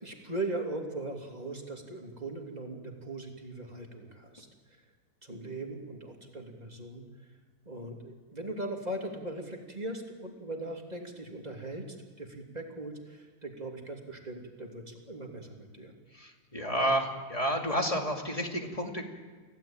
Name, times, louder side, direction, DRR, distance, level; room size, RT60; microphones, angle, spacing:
voice 1, 0.0-4.8 5.2-7.3 7.6-15.9, right 2 dB, 20° right, 1 dB, 2.9 m, -39 dB
voice 2, 16.1-19.0, equal, 15° left, 2 dB, 2.5 m, -30 dB
25.5 x 16.5 x 8.9 m, 1.4 s
omnidirectional pair, 2.1 m